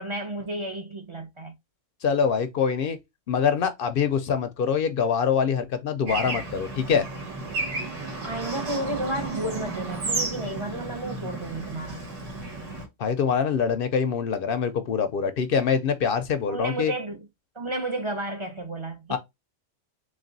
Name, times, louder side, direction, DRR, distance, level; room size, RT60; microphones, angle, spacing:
voice 1, 0.0-1.5 8.2-12.0 16.5-17.3 17.5-19.2, right 1 dB, 35° right, 0.5 m, -32 dB
voice 2, 2.0-3.0 3.3-7.1 13.0-16.9 19.1-19.2, left 6 dB, 60° left, 0.6 m, -24 dB
Bird / Traffic noise roadway noise, 6.1-12.9, right 3 dB, 70° right, 1.8 m, -33 dB
3.3 x 3.2 x 3.9 m
omnidirectional pair, 1.3 m